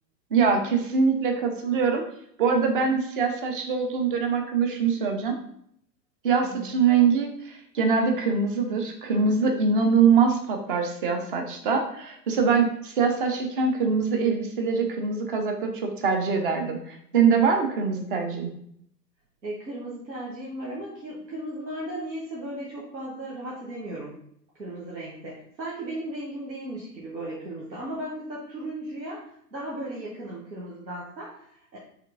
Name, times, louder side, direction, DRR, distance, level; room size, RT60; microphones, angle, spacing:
voice 1, 0.3-2.0 2.4-5.4 6.2-18.5, right 5 dB, 35° right, 4 dB, 0.6 m, -23 dB
voice 2, 6.4-6.7 19.4-24.1 24.6-31.8, right 1 dB, 85° right, -5 dB, 1.0 m, -36 dB
4.3 x 3.3 x 2.5 m, 0.69 s
figure-of-eight pair, 110°, 50 cm